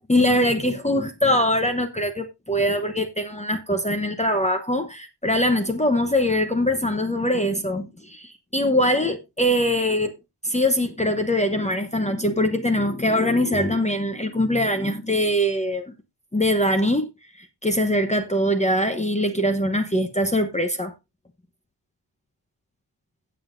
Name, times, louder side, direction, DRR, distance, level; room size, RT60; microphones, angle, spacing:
voice 1, 0.1-10.1 10.4-15.9 16.3-17.1 17.4-20.9, left 1 dB, 15° left, 1.0 m, -22 dB
16.5 x 7.3 x 2.6 m
wide cardioid pair, 105°, 43 cm